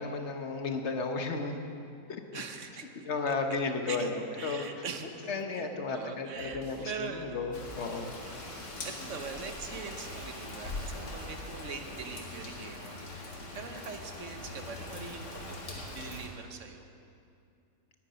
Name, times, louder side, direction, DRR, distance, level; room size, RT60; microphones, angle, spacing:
voice 1, 0.0-1.6 2.1-2.4 3.1-4.8 5.3-8.1, left 4 dB, 50° left, 5 dB, 1.2 m, -34 dB
voice 2, 2.3-2.9 3.3-3.4 3.9-7.4 8.8-13.0 13.5-16.9, right 5 dB, 55° right, 6 dB, 1.2 m, -42 dB
sound 1, 6.3-11.6, right 1 dB, 75° right, 1.9 m, -53 dB
Rain, 7.5-16.3, left 2 dB, 90° left, 2.4 m, -42 dB
9.8 x 9.2 x 9.9 m, 2.5 s
omnidirectional pair, 1.7 m